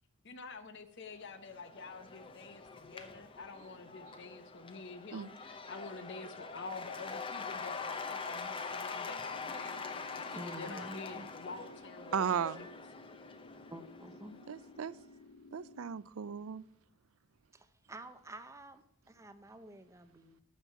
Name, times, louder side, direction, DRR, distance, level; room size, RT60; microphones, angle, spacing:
voice 1, 0.2-12.3 12.6-12.7, left 3 dB, 50° left, 0.8 m, -48 dB
Cheering / Applause / Crowd, 1.2-14.7, left 4 dB, 25° left, 0.8 m, -44 dB
sound 1, 9.3-15.8, left 3 dB, 85° left, 1.1 m, -56 dB
voice 2, 10.3-11.3 13.7-14.4 17.5-20.4, right 1 dB, 15° right, 0.6 m, -49 dB
voice 3, 12.1-12.7 14.5-14.9 15.5-16.6, right 7 dB, 70° right, 0.4 m, -35 dB
9.0 x 6.4 x 8.3 m
head